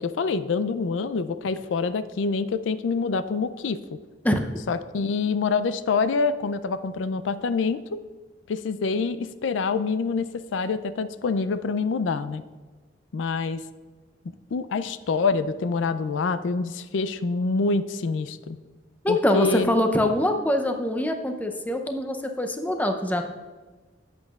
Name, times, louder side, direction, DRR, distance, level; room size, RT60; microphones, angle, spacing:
voice 1, 0.0-3.8 4.7-8.0 8.5-12.4 13.1-13.6 14.5-18.6 19.1-19.7, left 4 dB, 90° left, 13 dB, 0.4 m, -26 dB
voice 2, 19.0-23.2, left 1 dB, 10° left, 5 dB, 0.5 m, -24 dB
11.5 x 7.7 x 2.4 m, 1.3 s
head